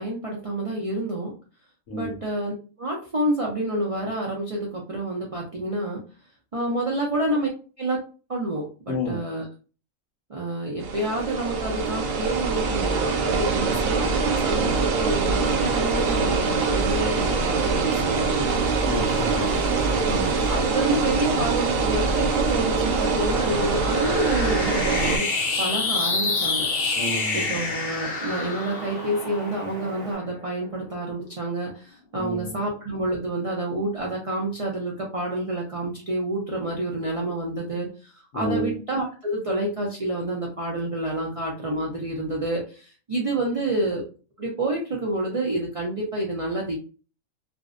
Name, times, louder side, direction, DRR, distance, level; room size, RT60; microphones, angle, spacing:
voice 1, 0.0-1.3 1.9-2.5 2.8-6.0 6.5-7.5 7.8-8.0 8.3-9.4 10.3-18.4 20.1-25.3 25.6-26.7 27.3-44.0 44.4-46.8, right 1 dB, 60° right, -2 dB, 0.3 m, -28 dB
voice 2, 1.9-2.2 6.6-7.1 7.9-8.0 8.9-9.2 13.6-13.9 18.9-19.5 19.9-20.4 27.0-27.5 32.1-32.6 38.3-38.8 43.5-43.6, left 1 dB, 75° left, 4 dB, 0.9 m, -31 dB
sound 1, 10.8-25.2, right 4 dB, 80° right, 1.0 m, -24 dB
Wind, 15.3-30.2, right 2 dB, 35° right, 1.1 m, -39 dB
sound 2, 21.9-30.6, left 4 dB, 55° left, 0.6 m, -29 dB
2.5 x 2.0 x 2.4 m, 0.36 s
omnidirectional pair, 1.3 m